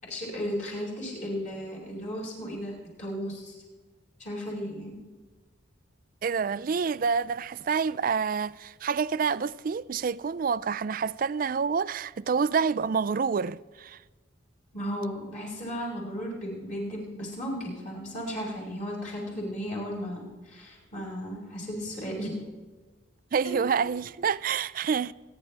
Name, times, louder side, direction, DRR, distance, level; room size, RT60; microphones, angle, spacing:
voice 1, 0.0-3.6 4.2-5.0 14.7-22.4 23.4-23.6, equal, 40° left, 5.7 m, -35 dB
voice 2, 6.2-14.0 23.3-25.1, right 6 dB, 45° right, 0.4 m, -28 dB
28.0 x 10.5 x 3.4 m
head